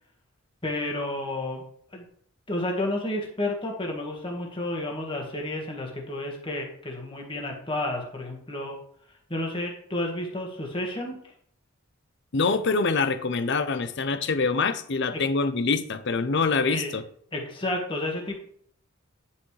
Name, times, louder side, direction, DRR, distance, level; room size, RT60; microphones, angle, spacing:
voice 1, 0.6-1.6 1.9-2.0 2.5-8.7 9.3-11.2 16.6-16.9 17.3-18.4, left 1 dB, 25° left, 0 dB, 1.7 m, -31 dB
voice 2, 12.3-17.0, left 4 dB, 55° left, 12 dB, 0.6 m, -25 dB
10.0 x 5.8 x 3.3 m, 0.63 s
head